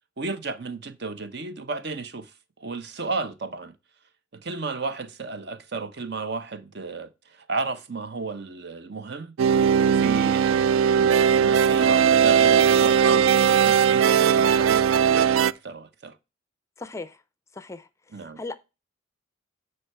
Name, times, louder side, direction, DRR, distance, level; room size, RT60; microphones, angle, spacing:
voice 1, 0.2-2.3 2.6-3.7 4.3-9.3 9.9-16.2 18.1-18.4, right 3 dB, 55° right, 0.8 m, -33 dB
sound 1, 9.4-15.5, right 7 dB, 75° right, 0.3 m, -19 dB
voice 2, 16.8-17.2 17.5-18.6, left 3 dB, 15° left, 0.4 m, -38 dB
9.6 x 4.5 x 4.5 m
head